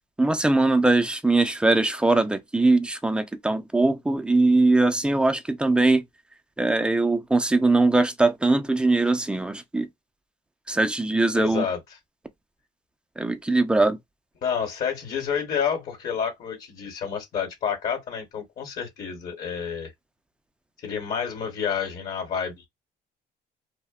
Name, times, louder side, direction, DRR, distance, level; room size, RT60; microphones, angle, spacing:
voice 1, 0.2-6.0 6.6-9.9 10.7-11.6 13.2-14.0, right 2 dB, 5° right, 0.3 m, -21 dB
voice 2, 11.3-11.8 14.4-19.9 20.8-22.7, left 7 dB, 55° left, 1.1 m, -29 dB
2.6 x 2.1 x 2.3 m
cardioid pair, 110°, 17 cm